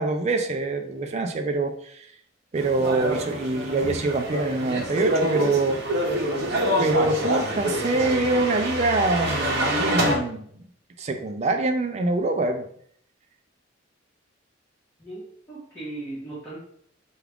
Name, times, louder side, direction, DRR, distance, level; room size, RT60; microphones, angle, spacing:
voice 1, 0.0-2.1 2.5-5.8 6.8-10.4 11.0-12.7, right 2 dB, 35° right, 5 dB, 0.4 m, -25 dB
sound 1, 2.5-10.2, equal, 55° right, 0.7 m, -26 dB
voice 2, 15.0-16.7, right 2 dB, 10° left, -10 dB, 1.4 m, -37 dB
4.7 x 2.4 x 3.5 m, 0.65 s
head